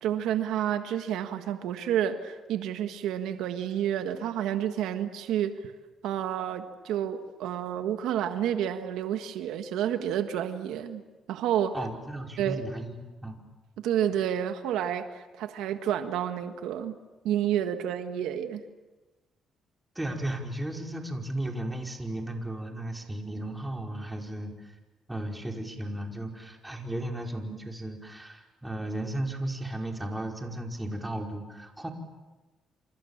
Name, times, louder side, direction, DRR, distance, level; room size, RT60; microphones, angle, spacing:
voice 1, 0.0-5.5 6.0-11.0 11.3-11.7 12.4-12.7 13.8-17.0 17.2-18.6, right 10 dB, 90° right, 8 dB, 1.6 m, -30 dB
voice 2, 11.7-13.4 20.0-24.7 25.1-31.9, right 1 dB, 10° right, 2 dB, 5.1 m, -35 dB
28.0 x 27.5 x 7.3 m, 1.2 s
cardioid pair, 90°, 0 cm